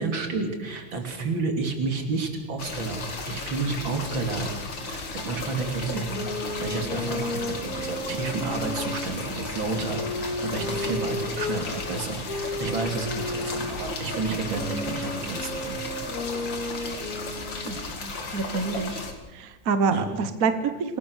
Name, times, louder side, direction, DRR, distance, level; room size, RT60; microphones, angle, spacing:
voice 1, 0.0-6.1 6.6-15.8 19.9-20.1, right 3 dB, 80° right, 4 dB, 3.7 m, -30 dB
sound 1, 2.6-19.1, left 3 dB, 70° left, 3.1 m, -35 dB
voice 2, 5.9-6.3 17.6-19.0 19.3-21.0, right 5 dB, 50° right, 10 dB, 1.5 m, -27 dB
sound 2, 6.1-11.6 12.3-17.8, left 2 dB, 45° left, 2.5 m, -34 dB
27.5 x 18.5 x 6.4 m, 1.1 s
omnidirectional pair, 2.1 m